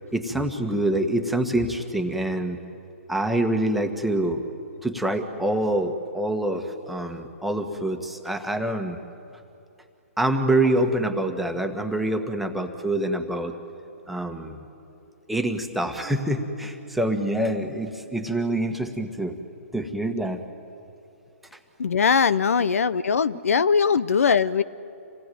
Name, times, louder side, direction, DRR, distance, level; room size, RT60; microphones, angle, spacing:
voice 1, 0.1-2.6 3.1-4.4 4.8-9.0 10.2-13.5 14.1-14.7 15.3-19.4 19.7-20.4, right 1 dB, ahead, 5 dB, 1.5 m, -26 dB
voice 2, 21.8-24.6, left 6 dB, 75° left, 17 dB, 0.7 m, -21 dB
27.0 x 18.0 x 9.4 m, 2.8 s
hypercardioid pair, 135°, 8 cm